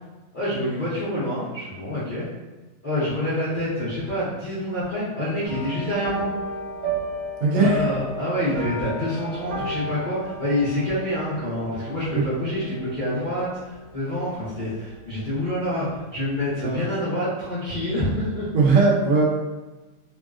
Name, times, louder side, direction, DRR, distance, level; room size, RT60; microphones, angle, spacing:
voice 1, 0.3-2.3 2.8-6.3 7.5-18.5, left 1 dB, 50° left, -12 dB, 0.6 m, -27 dB
sound 1, 5.4-15.0 15.3-15.7 16.0-16.1, right 1 dB, 35° right, 1.3 m, -34 dB
voice 2, 7.4-7.8 12.1-12.2 16.6-16.8 18.5-19.2, right 4 dB, 65° right, -3 dB, 0.8 m, -18 dB
3.4 x 2.3 x 2.3 m, 1.2 s
omnidirectional pair, 1.9 m